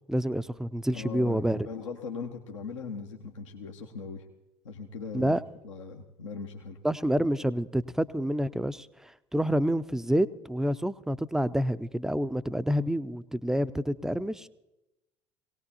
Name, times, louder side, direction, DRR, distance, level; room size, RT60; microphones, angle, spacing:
voice 1, 0.1-1.7 5.1-5.4 6.8-14.5, equal, 5° right, 14 dB, 0.5 m, -28 dB
voice 2, 0.9-4.3 4.6-5.4 5.6-6.8, left 5 dB, 75° left, 1 dB, 1.0 m, -39 dB
21.0 x 18.0 x 2.8 m, 0.98 s
figure-of-eight pair, 65°, 16 cm